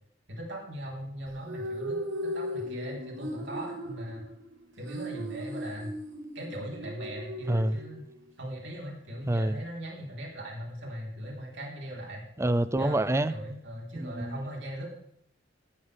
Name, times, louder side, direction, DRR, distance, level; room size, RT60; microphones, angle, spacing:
voice 1, 0.3-4.3 4.8-6.0 6.3-8.1 8.4-12.3 12.8-14.9, equal, 70° right, 3.9 m, -39 dB
sound 1, 1.3-8.3, equal, 90° right, 2.7 m, -38 dB
voice 2, 7.5-7.8 9.3-9.6 12.4-13.3 13.9-14.3, right 1 dB, 15° right, 0.5 m, -27 dB
14.5 x 12.5 x 3.4 m
head